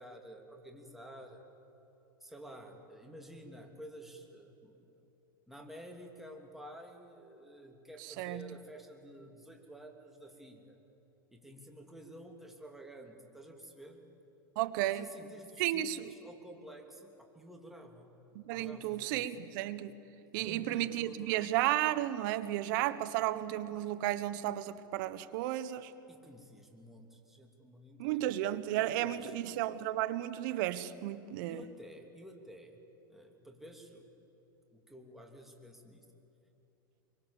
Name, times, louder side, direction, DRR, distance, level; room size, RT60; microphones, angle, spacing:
voice 1, 0.0-1.4 2.2-4.8 5.5-10.8 11.3-14.0 14.8-18.2 18.5-19.3 20.4-21.5 26.1-28.3 28.7-29.3 31.5-32.8 33.1-34.1 34.7-36.0, equal, ahead, 3.1 m, -51 dB
voice 2, 8.0-8.5 14.6-15.1 15.6-16.1 18.3-19.9 20.3-25.9 28.0-31.6, right 14 dB, 60° right, 1.2 m, -33 dB
24.5 x 23.5 x 7.2 m
hypercardioid pair, 110°, 12 cm